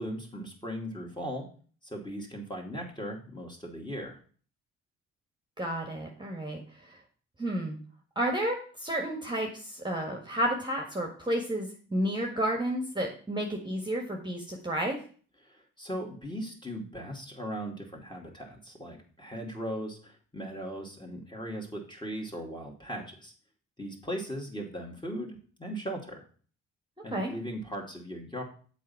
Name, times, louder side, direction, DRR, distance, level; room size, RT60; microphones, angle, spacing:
voice 1, 0.0-1.5 1.8-4.2 15.4-23.3 23.8-26.2 27.0-28.4, equal, 15° left, -1 dB, 2.5 m, -38 dB
voice 2, 5.6-7.0 7.4-7.8 8.1-15.0 27.1-27.3, right 1 dB, 15° right, 1 dB, 1.7 m, -31 dB
7.5 x 4.2 x 5.8 m, 0.43 s
hypercardioid pair, 45°, 34 cm